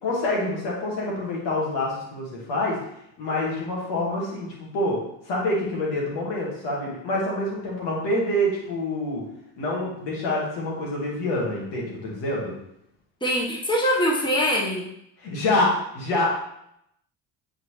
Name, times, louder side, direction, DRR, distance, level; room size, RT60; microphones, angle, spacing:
voice 1, 0.0-2.8 3.2-5.0 5.3-9.2 9.6-12.5 15.2-16.3, left 1 dB, 75° left, -3 dB, 2.1 m, -26 dB
voice 2, 13.2-14.9, equal, 10° left, -2 dB, 1.3 m, -23 dB
7.4 x 4.1 x 3.3 m, 0.77 s
supercardioid pair, 70°, 43 cm